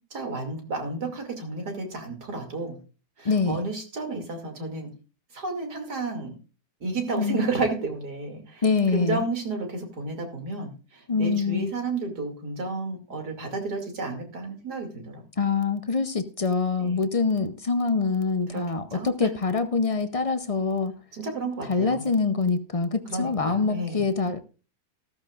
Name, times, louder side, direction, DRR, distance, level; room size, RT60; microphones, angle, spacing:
voice 1, 0.1-2.8 3.2-4.9 5.3-6.3 6.8-8.6 8.9-15.2 16.8-17.0 18.5-19.3 21.1-22.1 23.1-24.0, right 3 dB, 80° right, 3.2 m, -32 dB
voice 2, 3.2-3.6 7.2-7.5 8.6-9.2 11.1-11.7 15.4-21.0 21.7-24.4, left 4 dB, 65° left, 0.3 m, -25 dB
14.5 x 13.5 x 2.4 m
omnidirectional pair, 1.7 m